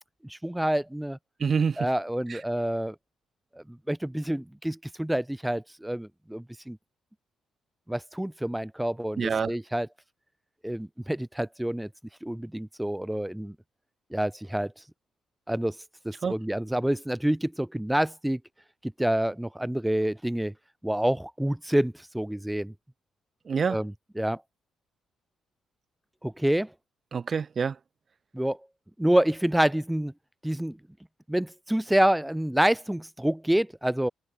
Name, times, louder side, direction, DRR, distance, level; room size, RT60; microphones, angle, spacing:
voice 1, 0.2-1.2 1.8-3.0 3.6-6.8 7.9-9.9 10.6-11.9 12.2-13.6 14.1-14.7 15.5-15.8 16.0-18.4 18.8-20.5 20.8-22.7 23.7-24.4 26.2-26.7 28.3-28.6 29.0-30.1 30.4-30.8 31.3-34.1, right 1 dB, 5° right, 1.7 m, -27 dB
voice 2, 1.4-1.9 2.3-2.4 9.2-9.5 16.2-16.3 23.5-23.8 27.1-27.8, right 6 dB, 40° right, 0.5 m, -26 dB
cardioid pair, 90°, 0 cm